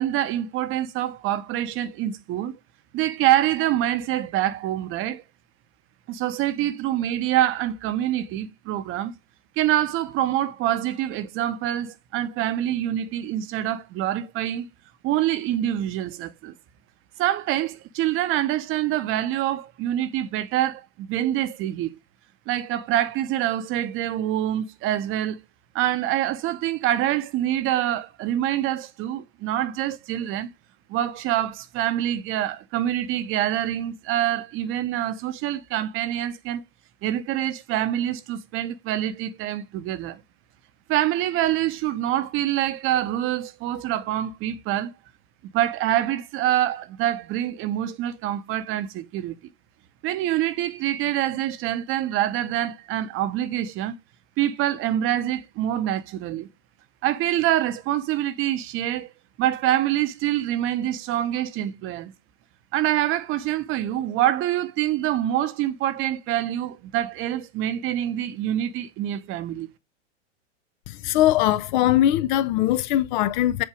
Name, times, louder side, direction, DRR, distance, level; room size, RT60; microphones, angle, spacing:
voice 1, 0.0-2.5 2.9-5.2 6.1-9.1 9.6-14.7 15.0-16.5 17.2-21.9 22.5-25.4 25.7-30.5 30.9-36.6 37.0-40.2 40.9-44.9 45.5-49.3 50.0-53.9 54.4-56.5 57.0-59.1 59.4-62.1 62.7-69.7, right 12 dB, 35° right, 0.8 m, -25 dB
voice 2, 70.9-73.6, left 13 dB, 40° left, 0.4 m, -21 dB
7.6 x 2.7 x 4.8 m
hypercardioid pair, 95°, 36 cm